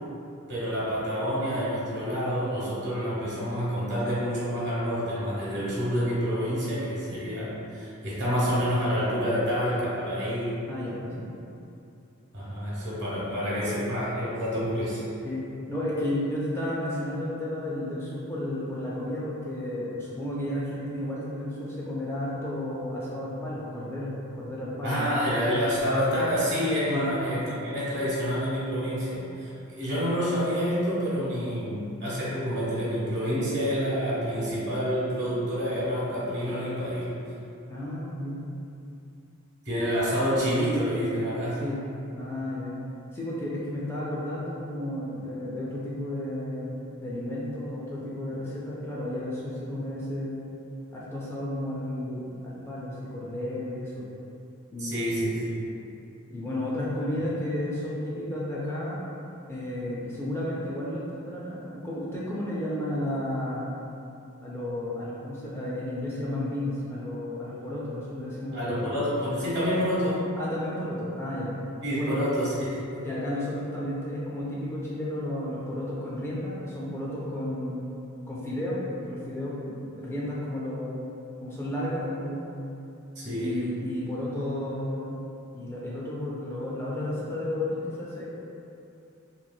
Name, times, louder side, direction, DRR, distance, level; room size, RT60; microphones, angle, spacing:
voice 1, 0.5-10.6 11.0-11.2 12.3-15.0 24.8-37.2 39.6-41.6 54.8-55.7 68.5-70.2 71.8-72.8 83.1-83.5, equal, 55° right, -8 dB, 1.1 m, -28 dB
voice 2, 10.7-11.3 15.2-15.4 15.7-25.2 26.9-27.1 37.7-38.4 41.5-41.8 42.1-42.7 43.1-50.5 50.9-54.1 54.7-55.4 56.3-59.1 59.5-63.7 64.4-68.9 70.4-71.5 71.9-72.3 73.0-77.8 78.3-81.1 81.4-82.6 83.3-85.2 85.5-88.2, left 1 dB, 10° left, -7 dB, 0.3 m, -32 dB
3.0 x 2.8 x 2.2 m, 2.7 s
head